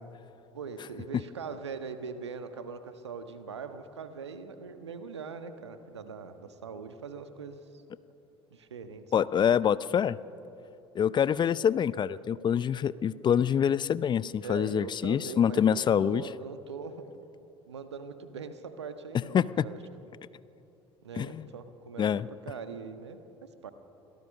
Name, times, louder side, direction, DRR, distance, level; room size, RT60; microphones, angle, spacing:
voice 1, 0.5-7.7 8.5-9.3 14.4-17.1 17.7-19.8 21.0-22.1 22.4-23.7, right 5 dB, 85° right, 9 dB, 1.3 m, -41 dB
voice 2, 9.1-10.2 11.0-16.2 19.3-19.7 21.2-21.4 22.0-22.3, left 8 dB, 30° left, 18 dB, 0.6 m, -26 dB
27.0 x 17.5 x 6.4 m, 2.9 s
figure-of-eight pair, 65°, 14 cm